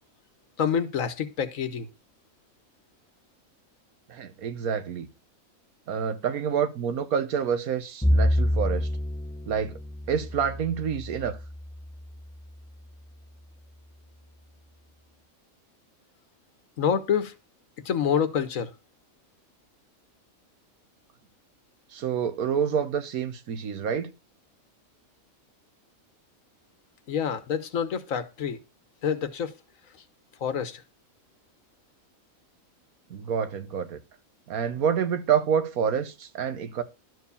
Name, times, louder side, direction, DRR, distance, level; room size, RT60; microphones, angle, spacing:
voice 1, 0.6-1.9 16.8-17.3 17.8-18.7 27.1-28.6 29.0-29.5 30.4-30.8, left 7 dB, 70° left, 1.4 m, -27 dB
voice 2, 4.1-5.1 5.9-8.9 9.5-9.8 10.1-11.4 21.9-24.1 33.1-34.0 34.5-36.8, right 7 dB, 85° right, 1.5 m, -28 dB
Bowed string instrument, 8.0-12.4, equal, 10° left, 0.4 m, -28 dB
12.0 x 4.7 x 6.9 m
omnidirectional pair, 1.5 m